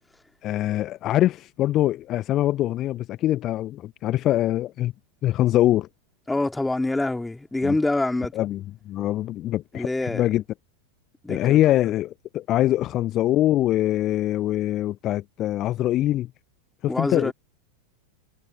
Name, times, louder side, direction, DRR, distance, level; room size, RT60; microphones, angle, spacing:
voice 1, 0.4-4.9 5.2-5.9 7.6-7.8 8.3-10.4 11.3-16.3 16.8-17.3, left 14 dB, 35° left, 1.2 m, -23 dB
voice 2, 6.3-8.3 9.7-10.2 11.2-11.6 16.9-17.3, left 2 dB, 5° left, 2.9 m, -25 dB
figure-of-eight pair, 90°, 0 cm